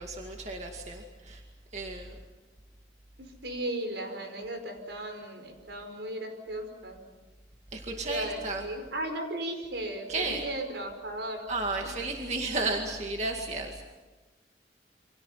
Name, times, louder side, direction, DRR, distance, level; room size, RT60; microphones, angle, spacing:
voice 1, 0.0-1.4 1.7-2.2 7.7-8.6 10.1-10.4 11.5-13.8, right 3 dB, 40° right, 2 dB, 2.2 m, -33 dB
voice 2, 3.2-7.0 7.9-11.5 11.8-11.9, right 1 dB, 80° right, 5 dB, 5.3 m, -36 dB
29.5 x 25.5 x 5.8 m, 1.3 s
head